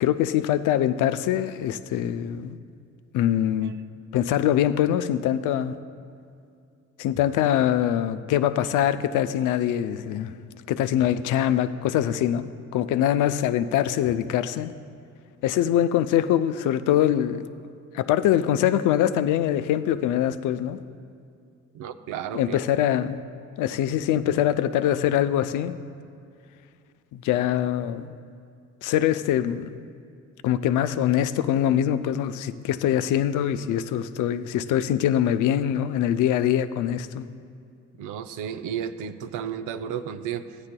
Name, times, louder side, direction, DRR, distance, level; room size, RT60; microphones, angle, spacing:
voice 1, 0.0-2.6 3.1-3.7 4.1-5.7 7.0-10.4 10.7-14.7 15.4-17.4 17.9-20.8 22.3-23.2 23.6-25.7 27.1-28.1 28.8-29.9 30.4-37.2, left 11 dB, 85° left, 12 dB, 0.5 m, -23 dB
voice 2, 21.7-22.6 38.0-40.6, right 8 dB, 90° right, 10 dB, 0.5 m, -33 dB
15.0 x 9.6 x 2.2 m, 2.4 s
cardioid pair, 90°, 30 cm